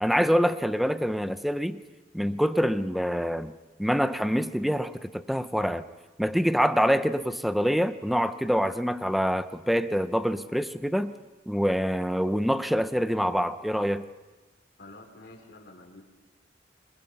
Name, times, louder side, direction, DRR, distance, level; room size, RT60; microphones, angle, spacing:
voice 1, 0.0-1.8 2.1-3.5 3.8-5.8 6.2-11.1 11.5-14.1, equal, ahead, 11 dB, 0.7 m, -25 dB
voice 2, 14.8-16.0, left 2 dB, 60° left, 0 dB, 4.6 m, -49 dB
27.0 x 21.0 x 5.5 m, 1.2 s
head